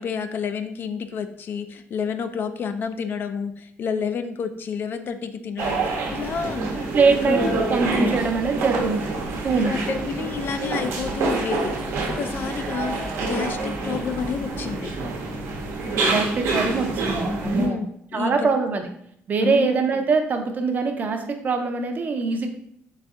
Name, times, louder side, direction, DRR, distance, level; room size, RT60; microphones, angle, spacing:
voice 1, 0.0-7.6 9.6-14.9 16.5-16.7 17.5-18.6 19.4-19.8, left 6 dB, 50° left, 9 dB, 0.4 m, -30 dB
sound 1, 5.6-17.7, right 3 dB, 85° right, 0.9 m, -27 dB
voice 2, 6.9-9.0 9.4-9.8 16.1-17.8 18.1-18.8 19.3-22.5, right 4 dB, 40° right, 5 dB, 0.6 m, -23 dB
4.1 x 3.3 x 3.6 m, 0.70 s
cardioid pair, 130°, 5 cm